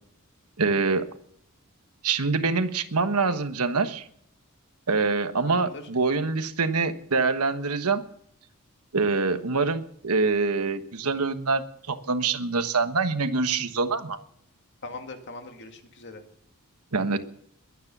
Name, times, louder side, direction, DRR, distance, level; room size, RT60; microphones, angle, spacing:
voice 1, 0.6-1.1 2.0-4.1 4.9-8.0 8.9-14.2 16.9-17.2, right 4 dB, 85° right, 10 dB, 1.3 m, -25 dB
voice 2, 5.5-5.8 14.8-16.2, left 3 dB, 55° left, 5 dB, 2.2 m, -40 dB
22.0 x 9.7 x 6.1 m, 0.69 s
head